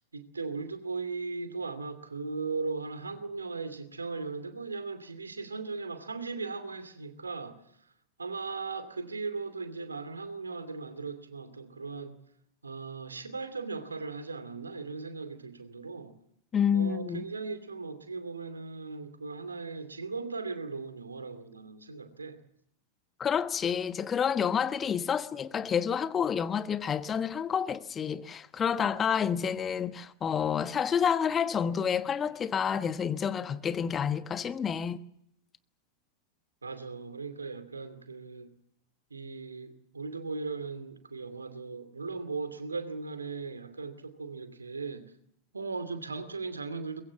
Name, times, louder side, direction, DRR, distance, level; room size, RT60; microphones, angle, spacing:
voice 1, 0.1-7.6 8.2-12.2 12.6-16.1 16.7-22.4 36.6-38.5 39.1-45.1 45.5-47.0, right 4 dB, 75° right, 2.6 m, -38 dB
voice 2, 16.5-17.2 23.2-35.0, left 7 dB, 20° left, 1.2 m, -29 dB
23.5 x 21.5 x 7.4 m
figure-of-eight pair, 90°, 0 cm